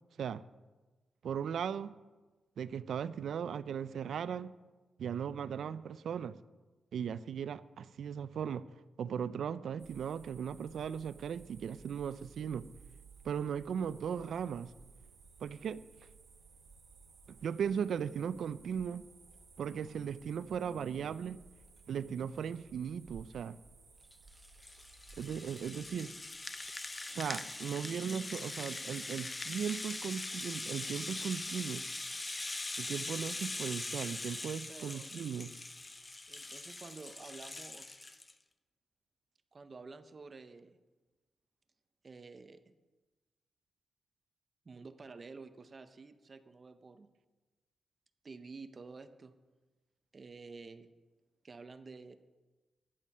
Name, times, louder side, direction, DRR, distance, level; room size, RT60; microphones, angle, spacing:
voice 1, 1.2-2.0 2.6-4.5 5.0-6.4 6.9-8.7 9.0-12.6 13.2-14.7 15.4-15.8 17.3-19.0 19.6-21.4 21.9-23.6 25.2-26.2 27.1-31.8 32.8-35.5, right 7 dB, 80° right, 15 dB, 0.4 m, -37 dB
amb forest night, 9.8-25.7, right 4 dB, 50° right, 1.3 m, -58 dB
Rattle (instrument), 24.1-38.3, left 2 dB, 20° left, 0.6 m, -42 dB
voice 2, 34.7-35.1 36.3-37.9 39.5-40.8 42.0-42.6 44.6-47.1 48.2-49.3 50.1-50.9 51.4-52.2, right 4 dB, 35° right, 10 dB, 0.6 m, -50 dB
10.5 x 8.8 x 5.5 m, 1.2 s
wide cardioid pair, 120°, 0 cm